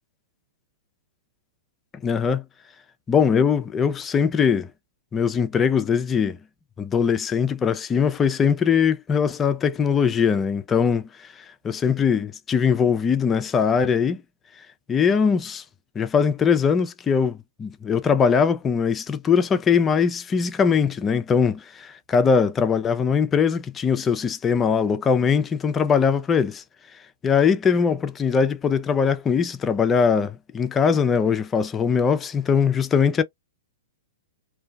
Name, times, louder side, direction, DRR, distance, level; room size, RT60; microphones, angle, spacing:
voice 1, 2.0-2.4 3.1-4.7 5.1-6.4 6.8-11.0 11.6-14.2 14.9-15.6 16.0-26.6 27.2-33.2, left 6 dB, 20° left, 0.4 m, -21 dB
2.6 x 2.3 x 2.2 m
hypercardioid pair, 135°, 0 cm